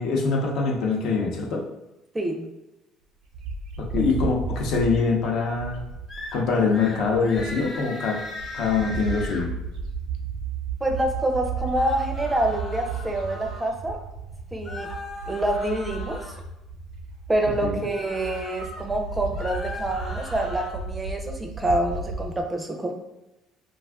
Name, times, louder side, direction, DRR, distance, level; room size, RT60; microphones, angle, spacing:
voice 1, 0.0-1.6 3.8-5.8 6.3-8.2 8.5-9.5 17.6-17.8, left 4 dB, 65° left, 0 dB, 0.6 m, -24 dB
voice 2, 2.1-2.5 10.8-14.0 14.5-14.9 15.3-16.3 17.3-22.9, right 1 dB, 15° right, 3 dB, 0.4 m, -26 dB
Bird, 3.3-7.8 8.2-22.4, right 5 dB, 75° right, 0.5 m, -34 dB
sound 1, 6.1-6.4 6.7-7.0 7.2-9.4 11.5-13.7 14.6-16.4 17.8-18.8 19.2-20.7, left 1 dB, 30° left, 0.9 m, -38 dB
2.4 x 2.3 x 3.5 m, 0.95 s
cardioid pair, 110°, 0 cm